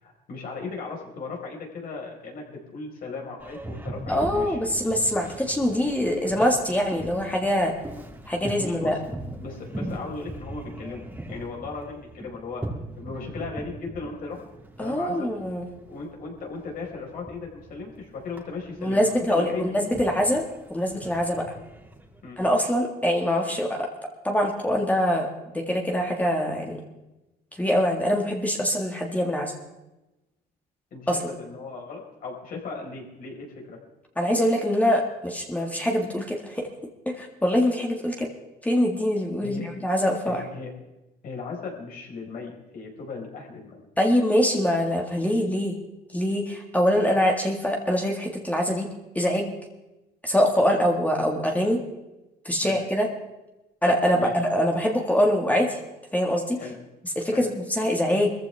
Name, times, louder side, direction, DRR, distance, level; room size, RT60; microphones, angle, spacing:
voice 1, 0.0-4.6 8.6-9.0 9.4-12.6 13.0-14.4 14.8-15.3 15.9-19.6 22.2-22.4 30.9-33.8 39.4-39.6 40.2-40.7 41.2-43.9 52.6-52.8 54.1-54.4 56.6-56.8 57.3-57.4, left 4 dB, 60° left, 0 dB, 4.8 m, -37 dB
Boat Water vehicle, 3.4-22.4, right 1 dB, 10° right, 2.4 m, -40 dB
voice 2, 4.1-7.7 8.3-8.9 14.8-15.7 18.8-20.4 20.7-21.4 22.4-23.9 24.2-25.3 25.5-26.8 27.6-29.5 31.1-31.2 34.2-36.7 37.1-38.3 38.6-40.4 44.0-45.8 46.1-48.9 49.2-49.5 50.2-51.8 52.5-53.1 53.8-55.8 56.1-56.6 57.2-58.3, equal, 10° left, 1 dB, 1.8 m, -24 dB
22.0 x 14.5 x 3.5 m, 1.0 s
cardioid pair, 110°, 17 cm